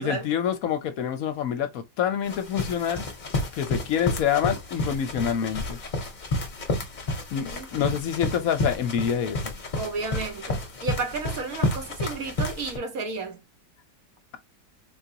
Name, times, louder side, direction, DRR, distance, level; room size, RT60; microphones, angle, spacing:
voice 1, 0.0-3.0 3.5-5.8 7.3-9.5, left 8 dB, 70° left, 1.0 m, -27 dB
sound 1, 2.2-12.8, left 2 dB, 35° left, 0.8 m, -31 dB
voice 2, 7.5-8.0 9.8-13.4, right 4 dB, 65° right, 1.2 m, -32 dB
3.9 x 2.4 x 2.7 m
omnidirectional pair, 1.8 m